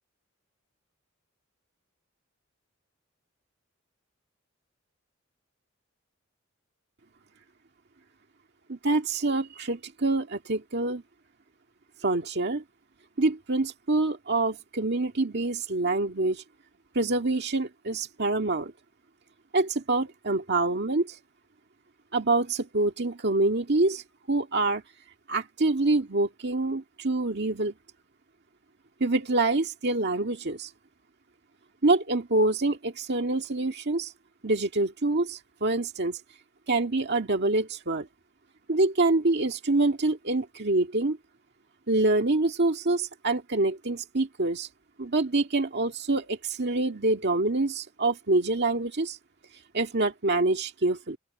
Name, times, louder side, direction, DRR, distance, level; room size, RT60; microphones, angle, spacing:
voice 1, 8.7-11.0 12.0-12.6 13.2-16.4 16.9-18.7 19.5-21.2 22.1-24.8 25.3-27.7 29.0-30.7 31.8-34.1 34.4-36.2 36.7-38.1 38.7-41.2 41.9-44.7 45.0-49.2 49.7-51.2, right 2 dB, 55° right, 1.9 m, -26 dB
open air
head